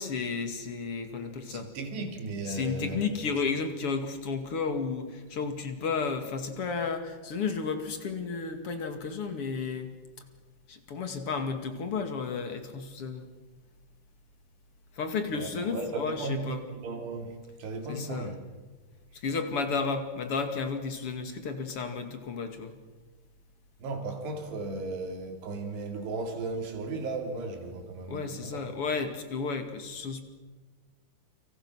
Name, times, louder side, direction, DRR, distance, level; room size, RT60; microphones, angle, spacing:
voice 1, 0.0-1.7 2.5-9.9 10.7-13.3 14.9-16.6 17.9-18.4 19.1-22.7 28.1-30.2, left 5 dB, 40° left, 2.6 m, -32 dB
voice 2, 1.5-3.2 15.3-18.4 23.8-28.6, right 3 dB, 85° right, 5.2 m, -36 dB
30.0 x 25.5 x 6.3 m
omnidirectional pair, 4.7 m